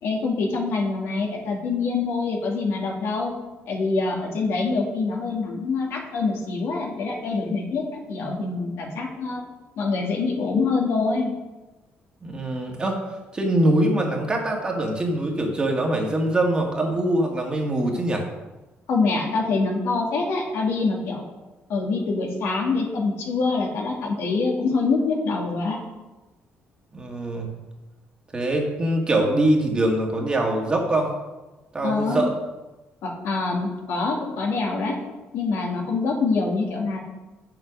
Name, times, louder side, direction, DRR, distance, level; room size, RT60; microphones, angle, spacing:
voice 1, 0.0-3.3 3.7-9.5 9.8-11.3 18.9-21.2 21.7-25.8 31.8-32.2 33.0-35.0 35.3-37.0, left 4 dB, 70° left, 0 dB, 2.2 m, -25 dB
voice 2, 12.2-13.0 13.3-18.3 26.9-27.5 28.3-31.1 31.7-32.3, right 1 dB, 20° right, 1 dB, 1.7 m, -23 dB
8.2 x 7.1 x 6.3 m, 1.1 s
cardioid pair, 140°, 4 cm